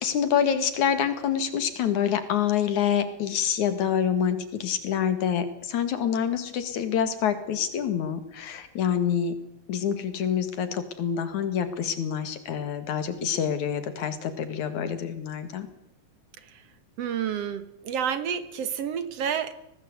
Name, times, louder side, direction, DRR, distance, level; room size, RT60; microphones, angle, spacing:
voice 1, 0.0-9.4 9.7-15.7, left 8 dB, 80° left, 10 dB, 3.4 m, -26 dB
voice 2, 17.0-19.5, right 8 dB, 60° right, 12 dB, 2.2 m, -29 dB
22.5 x 18.5 x 8.1 m, 0.82 s
omnidirectional pair, 3.3 m